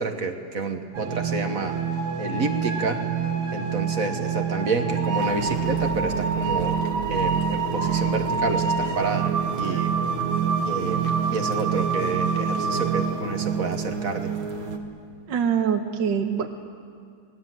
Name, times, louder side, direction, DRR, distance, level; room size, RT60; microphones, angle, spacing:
voice 1, 0.0-1.8 2.2-3.0 3.5-6.8 7.1-9.9 10.6-14.3, right 4 dB, 50° right, 6 dB, 1.5 m, -29 dB
sound 1, 0.9-14.8, right 6 dB, 85° right, 2.5 m, -26 dB
voice 2, 15.3-16.7, right 7 dB, 70° right, 5 dB, 1.6 m, -24 dB
28.0 x 19.5 x 7.6 m, 2.2 s
omnidirectional pair, 2.1 m